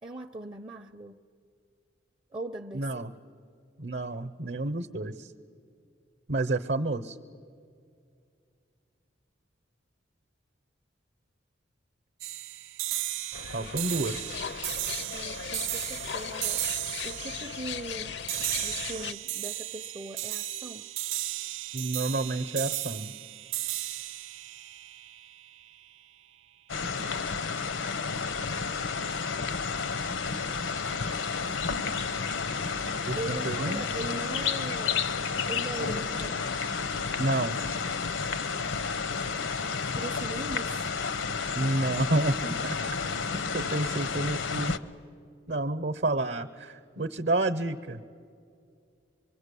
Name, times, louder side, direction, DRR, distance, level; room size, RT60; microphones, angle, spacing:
voice 1, 0.0-1.2 2.3-3.1 15.1-18.2 18.5-20.9 27.0-27.3 33.2-35.0 35.5-36.4 40.0-40.9, right 2 dB, 25° right, 0.5 m, -40 dB
voice 2, 2.7-3.1 3.8-5.3 6.3-7.2 13.5-14.3 21.7-23.1 33.1-34.1 37.2-37.6 41.5-42.8 43.0-43.1 43.5-44.8 45.5-48.0, right 2 dB, 60° right, 0.8 m, -30 dB
sound 1, 12.2-25.7, right 15 dB, 85° right, 0.5 m, -35 dB
sound 2, 13.3-19.1, left 7 dB, 60° left, 0.5 m, -38 dB
sound 3, 26.7-44.8, left 5 dB, 80° left, 0.9 m, -31 dB
25.5 x 23.0 x 8.3 m
head